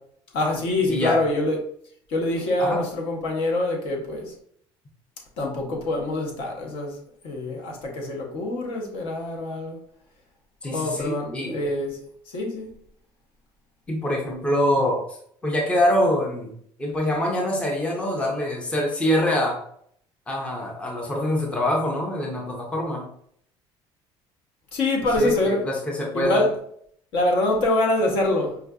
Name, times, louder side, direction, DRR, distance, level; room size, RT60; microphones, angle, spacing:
voice 1, 0.3-1.6 2.1-4.3 5.4-7.0 7.2-9.8 10.7-12.0 12.3-12.7 24.7-25.6 26.1-26.5 27.1-28.6, left 2 dB, 60° left, 1 dB, 0.9 m, -25 dB
voice 2, 0.9-1.2 2.6-2.8 10.6-11.6 13.9-15.0 15.4-16.5 16.8-19.5 20.3-23.1 25.2-26.4, left 1 dB, 10° left, -1 dB, 0.6 m, -24 dB
4.6 x 2.5 x 2.3 m, 0.66 s
cardioid pair, 155°, 10 cm